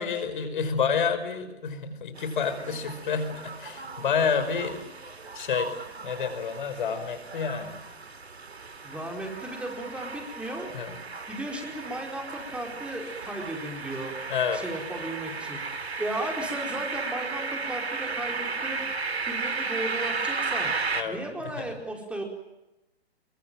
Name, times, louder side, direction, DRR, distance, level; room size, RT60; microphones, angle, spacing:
voice 1, 0.0-4.8 5.3-5.7 6.0-7.8 10.7-11.0 14.3-14.6 20.9-21.2 21.6-21.7, left 6 dB, 50° left, 9 dB, 5.6 m, -29 dB
sound 1, 2.2-21.0, right 4 dB, 70° right, 3.4 m, -35 dB
voice 2, 8.8-10.7 11.3-14.1 14.5-15.6 16.0-18.8 19.3-20.7 21.0-22.2, right 1 dB, 5° right, 2 dB, 4.9 m, -35 dB
27.5 x 23.5 x 9.2 m, 0.96 s
figure-of-eight pair, 130°, 32 cm